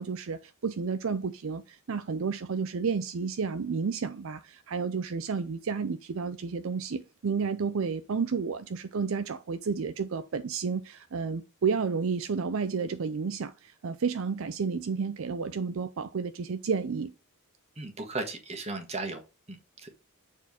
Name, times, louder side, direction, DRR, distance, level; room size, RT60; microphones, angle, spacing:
voice 1, 0.0-17.1, right 5 dB, 65° right, 0.5 m, -31 dB
voice 2, 17.8-19.2 19.5-19.9, right 3 dB, 30° right, 1.5 m, -36 dB
7.0 x 4.5 x 4.2 m
head